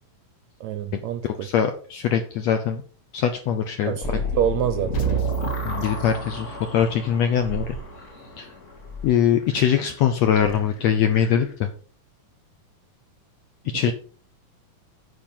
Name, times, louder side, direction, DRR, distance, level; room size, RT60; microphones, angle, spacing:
voice 1, 0.6-1.5 3.8-5.2, right 10 dB, 80° right, 10 dB, 1.6 m, -26 dB
voice 2, 1.2-2.8 3.1-4.0 5.6-7.8 8.4-8.5 9.0-11.7 13.6-13.9, left 8 dB, 75° left, 7 dB, 1.6 m, -22 dB
sound 1, 4.0-11.5, left 3 dB, 30° left, 1.5 m, -34 dB
sound 2, 4.9-7.0, right 9 dB, 60° left, 4.1 m, -29 dB
9.2 x 6.1 x 5.6 m, 0.43 s
omnidirectional pair, 3.9 m